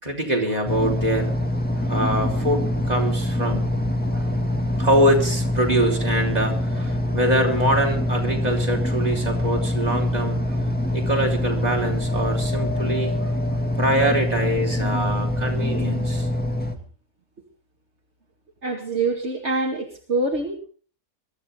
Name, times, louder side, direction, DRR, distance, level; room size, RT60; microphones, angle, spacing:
voice 1, 0.0-1.3 1.7-3.7 4.1-4.3 4.8-10.6 10.9-13.3 13.8-16.3, right 1 dB, 25° right, 0 dB, 4.7 m, -24 dB
sound 1, 0.6-16.7, left 1 dB, 5° left, 2.1 m, -24 dB
voice 2, 18.6-20.6, right 3 dB, 45° right, 1 dB, 2.6 m, -25 dB
23.0 x 14.0 x 3.8 m, 0.42 s
omnidirectional pair, 1.6 m